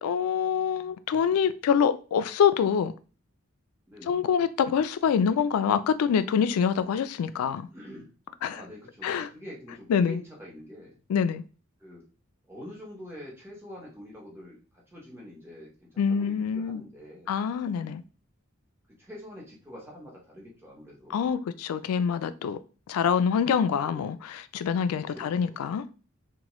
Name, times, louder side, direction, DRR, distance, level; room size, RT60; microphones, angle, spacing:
voice 1, 0.0-2.9 4.1-7.7 8.4-8.6 9.0-9.3 9.9-10.2 11.1-11.4 16.0-16.8 17.3-18.0 21.1-22.6 22.9-25.8, left 7 dB, 90° left, 0.3 m, -25 dB
voice 2, 7.7-8.1 8.5-11.0 11.8-12.0 12.5-14.6 14.9-17.4 19.0-21.2 23.8-24.1 25.1-25.6, left 1 dB, 10° right, 0.9 m, -45 dB
2.9 x 2.2 x 3.0 m
head